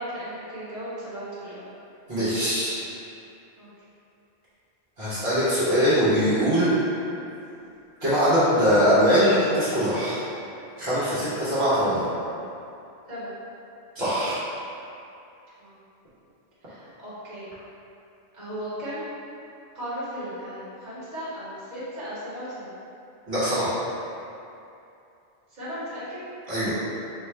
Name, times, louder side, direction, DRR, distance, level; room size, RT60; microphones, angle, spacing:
voice 1, 0.0-1.7 3.6-3.7 13.1-13.3 15.6-15.7 16.7-17.5 18.3-19.1 19.7-22.7 25.5-26.2, equal, 40° right, -12 dB, 1.4 m, -36 dB
voice 2, 2.1-2.7 5.0-6.7 8.0-10.2 10.8-12.1 13.9-14.4 23.3-23.7 26.5-26.7, equal, 65° right, -13 dB, 1.3 m, -22 dB
3.9 x 2.3 x 4.3 m, 2.7 s
omnidirectional pair, 1.1 m